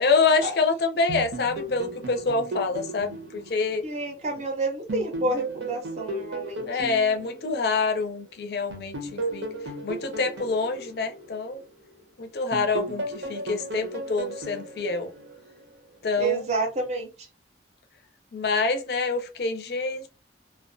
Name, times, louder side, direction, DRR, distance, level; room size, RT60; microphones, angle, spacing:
voice 1, 0.0-3.8 6.7-9.5 9.8-11.6 12.2-15.1 16.0-16.4 18.3-20.1, left 4 dB, 60° left, 0.4 m, -26 dB
sound 1, 1.1-4.4 4.9-8.1 8.7-12.0 12.5-15.8, right 2 dB, 90° right, 0.8 m, -35 dB
voice 2, 3.8-6.7 16.2-17.1, right 2 dB, 40° right, 0.6 m, -29 dB
2.3 x 2.2 x 2.5 m
head